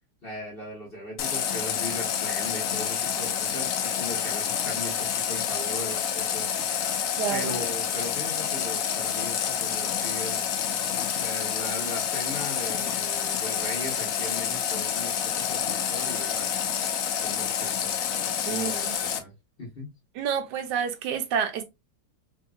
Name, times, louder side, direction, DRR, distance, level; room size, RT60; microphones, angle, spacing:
voice 1, 0.2-6.5 7.3-10.5 11.2-16.7 17.2-18.0 18.5-19.3 19.6-19.9, left 1 dB, 35° left, 1.3 m, -38 dB
Water tap faucet, 1.2-19.2, left 8 dB, 70° left, 0.8 m, -28 dB
voice 2, 7.2-7.5 18.5-18.9 20.1-21.7, right 7 dB, 80° right, 1.3 m, -29 dB
3.4 x 2.7 x 2.2 m
omnidirectional pair, 1.9 m